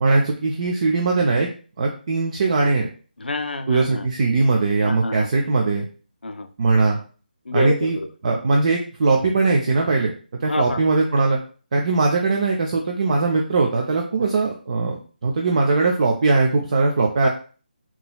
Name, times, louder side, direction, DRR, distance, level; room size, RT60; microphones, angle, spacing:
voice 1, 0.0-1.5 1.8-2.9 3.7-5.9 6.6-7.0 7.5-8.0 8.2-11.4 11.7-17.3, right 3 dB, 45° right, 1 dB, 0.5 m, -20 dB
voice 2, 3.2-4.1 4.8-5.3 6.2-6.5 7.5-8.1 10.4-10.8 17.2-17.3, left 2 dB, 80° left, 9 dB, 0.5 m, -27 dB
3.8 x 2.9 x 2.3 m, 0.38 s
figure-of-eight pair, 155°, 5 cm